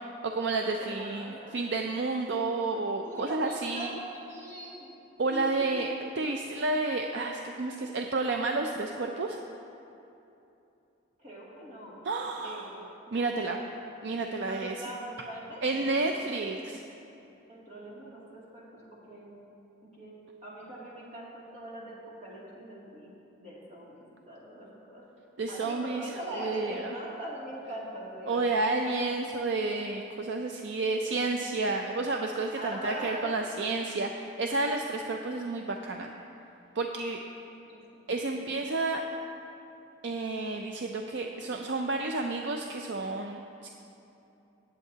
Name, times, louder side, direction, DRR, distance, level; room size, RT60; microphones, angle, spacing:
voice 1, 0.2-4.0 5.2-5.9 6.2-9.4 12.0-12.7 13.1-13.6 14.0-14.7 15.6-16.8 25.4-26.0 26.3-26.9 28.3-36.1 36.8-37.2 38.1-39.1 40.0-43.7, right 3 dB, 60° right, 3 dB, 0.5 m, -31 dB
voice 2, 0.8-1.6 3.0-4.9 5.3-6.0 11.2-12.0 12.4-12.7 13.1-13.6 14.4-15.8 16.2-16.5 17.5-18.8 19.1-19.3 19.8-20.1 20.4-23.1 23.4-25.0 25.5-28.4 32.6-33.4 37.7-37.8 38.3-38.4, right 1 dB, 35° right, -7 dB, 2.4 m, -42 dB
19.0 x 8.2 x 2.8 m, 2.8 s
head